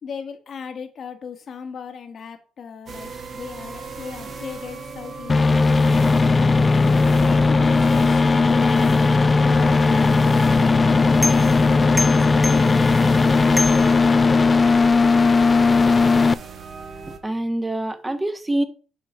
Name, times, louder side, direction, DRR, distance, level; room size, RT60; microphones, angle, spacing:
voice 1, 0.0-6.2 6.9-10.2 10.8-12.8, left 6 dB, 55° left, 1.7 m, -37 dB
sound 1, 2.9-17.2, right 4 dB, 50° right, 1.6 m, -37 dB
sound 2, 5.3-16.3, left 4 dB, 30° left, 0.4 m, -17 dB
sound 3, 10.0-14.7, left 2 dB, 10° left, 1.3 m, -31 dB
voice 2, 17.1-18.6, right 1 dB, 15° right, 1.2 m, -25 dB
8.7 x 4.0 x 6.6 m
cardioid pair, 90°, 0 cm